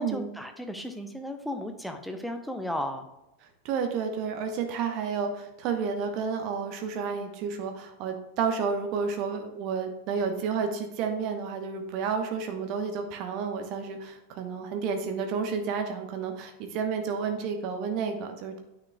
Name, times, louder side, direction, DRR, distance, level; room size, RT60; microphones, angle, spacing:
voice 1, 0.0-3.1, left 1 dB, ahead, 5 dB, 0.8 m, -34 dB
voice 2, 3.6-18.6, right 5 dB, 40° right, 5 dB, 1.1 m, -31 dB
9.3 x 6.4 x 2.3 m, 0.91 s
figure-of-eight pair, 90°, 0 cm